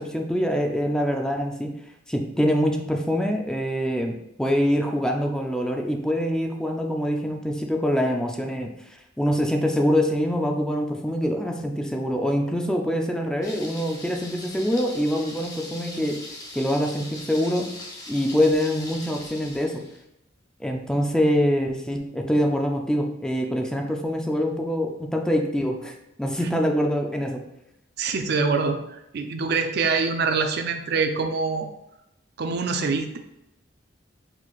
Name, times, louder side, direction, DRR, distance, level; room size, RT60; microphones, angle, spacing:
voice 1, 0.0-1.8 2.1-8.7 9.2-16.3 16.5-17.7 18.1-19.9 20.6-27.5, equal, 5° left, 2 dB, 0.4 m, -24 dB
Thunder, 13.4-20.0, left 2 dB, 20° left, 0.8 m, -40 dB
voice 2, 28.0-31.7 32.4-33.2, right 4 dB, 60° right, 6 dB, 0.4 m, -25 dB
4.5 x 4.0 x 2.3 m, 0.84 s
head